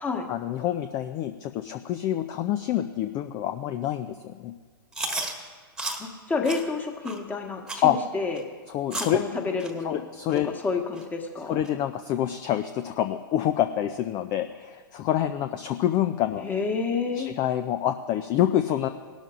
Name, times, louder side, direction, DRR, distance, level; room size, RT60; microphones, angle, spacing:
voice 1, 0.3-4.5 7.8-8.0 8.7-9.2 9.8-10.5 11.5-16.4 17.2-18.9, left 12 dB, 30° left, 9 dB, 0.5 m, -27 dB
Chewing mastication, 4.9-5.3 5.8-6.0 6.4-6.6 7.0-7.2 7.7-7.9 8.4-8.5 8.9-9.2 9.6-9.7 10.3-10.4 11.0-11.1 11.6-11.7, right 2 dB, 5° right, 1.5 m, -32 dB
voice 2, 6.0-8.4 8.9-10.0 10.4-11.6 16.4-17.3, left 4 dB, 15° left, 3 dB, 1.5 m, -29 dB
18.0 x 12.5 x 2.5 m, 1.5 s
figure-of-eight pair, 110°, 12 cm